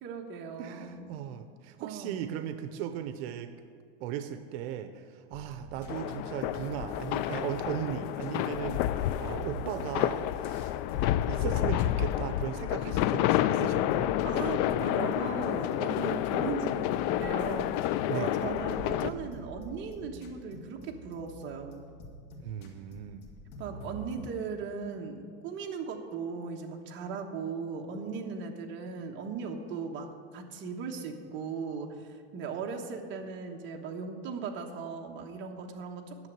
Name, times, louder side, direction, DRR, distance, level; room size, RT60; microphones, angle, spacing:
voice 1, 0.0-1.1 1.8-2.3 14.2-21.8 23.6-36.3, right 5 dB, 40° right, 2 dB, 1.2 m, -38 dB
voice 2, 0.6-3.5 4.0-10.7 11.2-14.1 18.1-18.3 22.4-23.3, right 10 dB, 85° right, 10 dB, 0.7 m, -37 dB
sound 1, 5.3-24.3, equal, 85° left, 2.1 m, -47 dB
sound 2, 5.9-19.1, left 13 dB, 55° left, 0.4 m, -29 dB
9.6 x 7.1 x 9.0 m, 2.1 s
cardioid pair, 160°, 30 cm